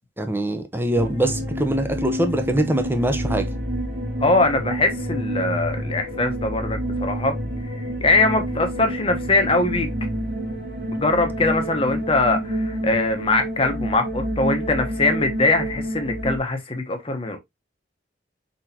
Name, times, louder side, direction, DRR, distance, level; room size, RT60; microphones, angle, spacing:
voice 1, 0.2-3.5, right 1 dB, 10° right, 0.7 m, -23 dB
sound 1, 0.9-16.4, equal, 70° right, 1.6 m, -28 dB
voice 2, 4.2-7.4 7.7-9.9 10.9-17.4, left 2 dB, 30° left, 1.0 m, -22 dB
4.5 x 4.2 x 2.8 m
head